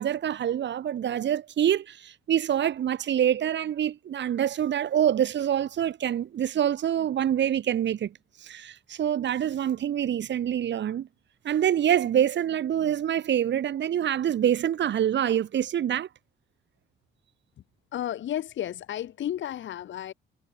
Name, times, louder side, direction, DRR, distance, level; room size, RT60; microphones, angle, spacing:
voice 1, 0.0-8.1 8.4-11.1 11.4-16.1, right 10 dB, 65° right, 4.1 m, -26 dB
voice 2, 17.9-20.1, left 11 dB, 70° left, 3.1 m, -32 dB
cardioid pair, 90°, 20 cm